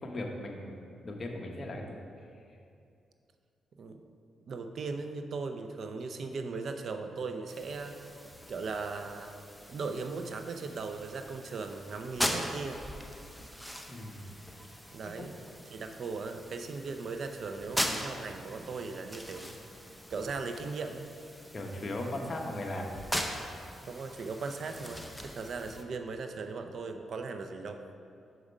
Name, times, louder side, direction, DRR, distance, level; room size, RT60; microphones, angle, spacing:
voice 1, 0.0-1.9 13.9-14.3 15.2-15.3 21.5-22.9, left 1 dB, 40° left, 1 dB, 1.0 m, -38 dB
voice 2, 4.5-8.0 8.5-9.3 9.7-12.8 14.9-15.4 15.7-19.6 20.1-21.1 23.8-27.8, right 4 dB, 60° right, 6 dB, 0.5 m, -38 dB
sound 1, 7.5-25.8, equal, ahead, 0.7 m, -40 dB
6.2 x 5.0 x 5.3 m, 2.5 s
cardioid pair, 85°, 0 cm